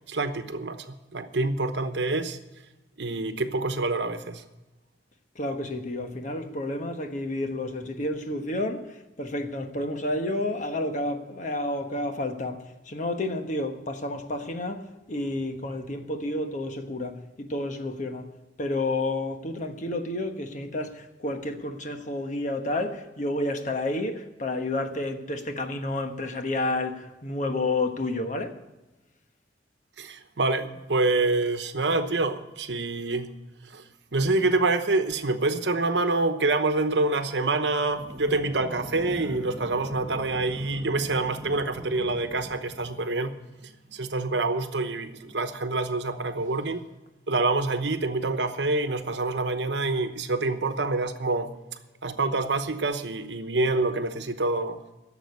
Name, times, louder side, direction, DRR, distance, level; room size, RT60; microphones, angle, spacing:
voice 1, 0.1-2.4 3.0-4.4 30.0-33.3 33.7-33.8 34.1-43.3 43.6-46.8 47.3-51.5 52.0-54.8, right 2 dB, 75° right, 1.0 m, -26 dB
voice 2, 5.3-18.3 18.6-28.6, left 2 dB, 45° left, 1.2 m, -30 dB
sound 1, 37.9-43.1, equal, 15° right, 1.3 m, -42 dB
11.5 x 7.2 x 9.5 m
head